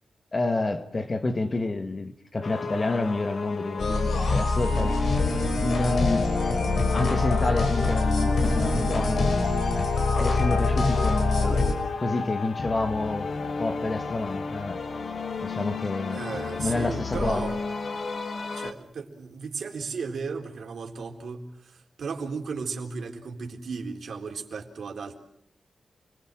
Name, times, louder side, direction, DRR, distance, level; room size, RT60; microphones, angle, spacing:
voice 1, 0.3-5.0 5.5-6.4 6.9-9.4 10.1-11.7 12.0-14.8 15.4-16.2 16.6-17.4, left 2 dB, 35° left, 1.9 m, -29 dB
sound 1, 2.4-18.7, left 4 dB, 65° left, 2.1 m, -33 dB
sound 2, 3.8-11.7, left 3 dB, 80° left, 6.1 m, -24 dB
sound 3, 7.9-9.1 10.1-10.6 11.8-11.9 12.2-12.3 13.3-13.6 14.0-14.1 16.1-16.2 16.5-16.8 17.1-17.8, left 2 dB, 15° left, 2.1 m, -37 dB
voice 2, 16.1-17.6 18.4-25.2, right 5 dB, 80° right, 3.9 m, -35 dB
29.5 x 22.0 x 7.6 m
wide cardioid pair, 105°, 0 cm